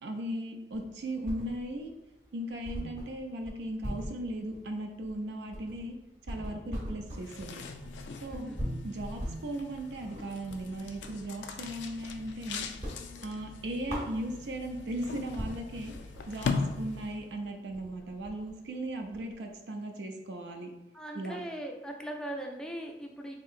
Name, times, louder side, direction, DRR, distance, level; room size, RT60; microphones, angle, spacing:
voice 1, 0.0-1.9 2.3-6.0 6.3-7.6 8.2-8.5 8.8-12.7 13.2-15.9 16.3-20.7 21.1-21.4, right 1 dB, 90° right, 3 dB, 0.4 m, -37 dB
sound 1, 0.7-1.9 2.2-2.3 2.6-11.2 11.6-12.4 12.7-14.7 15.1-15.2 15.4-19.5, equal, 40° right, 0.8 m, -41 dB
sound 2, 7.0-17.4, left 4 dB, 90° left, 0.3 m, -40 dB
voice 2, 8.2-8.6 20.9-23.4, right 1 dB, 5° left, 1 dB, 0.3 m, -40 dB
3.6 x 2.8 x 2.4 m, 0.97 s
head